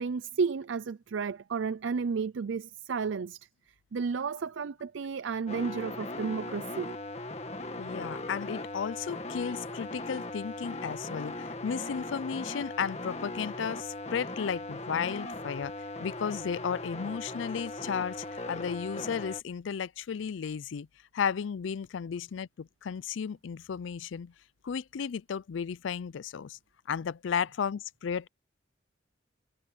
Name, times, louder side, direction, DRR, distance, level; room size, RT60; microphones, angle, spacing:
voice 1, 0.0-3.4 3.9-6.9, right 5 dB, 80° right, 0.4 m, -32 dB
sound 1, 5.5-19.4, left 2 dB, 35° left, 1.8 m, -39 dB
voice 2, 7.8-15.7 16.0-20.9 21.1-24.3 24.6-26.6 26.9-28.3, left 7 dB, 75° left, 0.4 m, -34 dB
head